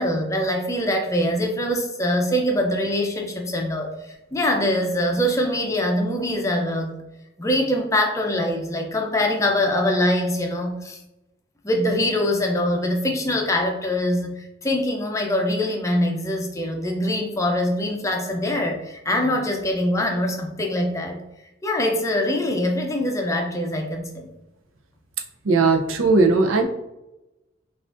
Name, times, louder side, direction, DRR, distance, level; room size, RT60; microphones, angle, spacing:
voice 1, 0.0-7.0 7.4-11.0 11.6-21.2 21.6-24.3, left 1 dB, 15° left, 2 dB, 0.5 m, -23 dB
voice 2, 25.5-26.6, right 3 dB, 90° right, 4 dB, 0.5 m, -18 dB
5.8 x 2.4 x 2.5 m, 0.96 s
head